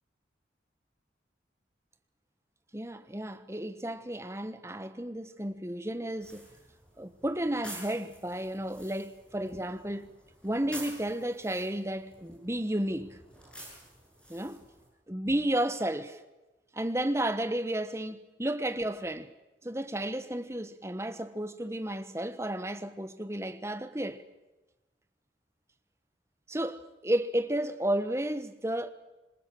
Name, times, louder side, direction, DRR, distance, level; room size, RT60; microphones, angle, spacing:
voice 1, 2.7-6.5 7.0-10.1 10.4-13.2 14.3-14.6 15.1-16.2 16.7-19.3 19.6-24.2 26.5-28.9, right 1 dB, 15° right, 1.2 m, -32 dB
sound 1, 6.2-14.9, right 1 dB, 5° left, 7.5 m, -49 dB
26.5 x 21.5 x 7.6 m
head